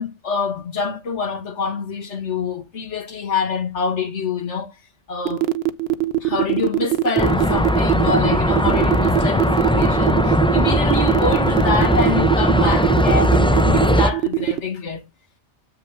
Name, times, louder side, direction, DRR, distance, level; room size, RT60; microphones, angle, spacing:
voice 1, 0.0-4.7 5.1-5.5 6.2-15.0, left 4 dB, 75° left, 1.9 m, -26 dB
sound 1, 5.3-14.6, right 17 dB, 60° right, 0.9 m, -21 dB
sound 2, 7.2-14.1, equal, 5° left, 0.4 m, -18 dB
8.0 x 5.6 x 3.4 m
omnidirectional pair, 1.2 m